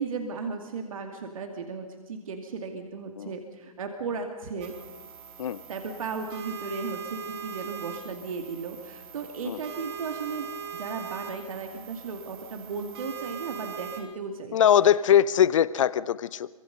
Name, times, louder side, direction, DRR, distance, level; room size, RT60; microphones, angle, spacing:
voice 1, 0.0-4.7 5.7-10.5 10.7-14.7, right 4 dB, 65° right, 4 dB, 2.6 m, -35 dB
sound 1, 4.6-14.0, right 7 dB, 45° right, 4.8 m, -41 dB
voice 2, 14.5-16.5, left 10 dB, 60° left, 18 dB, 0.9 m, -21 dB
26.5 x 24.5 x 5.4 m, 1.3 s
figure-of-eight pair, 125°, 19 cm